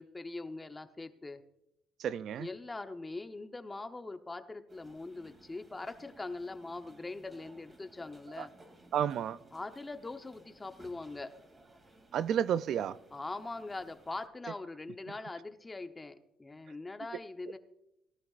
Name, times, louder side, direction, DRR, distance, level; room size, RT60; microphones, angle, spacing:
voice 1, 0.0-1.4 2.4-8.5 9.5-11.3 13.1-17.6, left 3 dB, 15° left, 0.9 m, -42 dB
voice 2, 2.0-2.5 8.4-8.5 8.9-9.4 12.1-13.0, right 9 dB, 65° right, 0.4 m, -31 dB
sound 1, 4.7-14.3, right 2 dB, 25° right, 2.6 m, -60 dB
19.0 x 12.0 x 2.5 m
cardioid pair, 105°, 0 cm